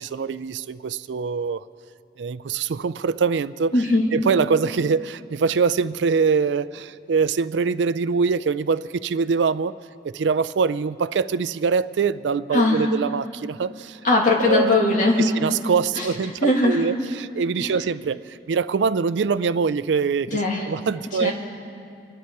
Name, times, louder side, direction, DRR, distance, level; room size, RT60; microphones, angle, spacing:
voice 1, 0.0-1.6 2.2-3.8 4.1-9.7 10.0-14.0 14.4-14.7 15.2-20.4 20.7-21.3, right 5 dB, 80° right, 16 dB, 0.4 m, -23 dB
voice 2, 3.7-4.1 12.5-12.9 14.0-15.3 15.9-16.1 16.4-16.8 17.6-17.7 20.3-20.7 21.2-21.3, left 2 dB, 45° left, -1 dB, 2.3 m, -19 dB
27.0 x 10.5 x 4.7 m, 2.5 s
head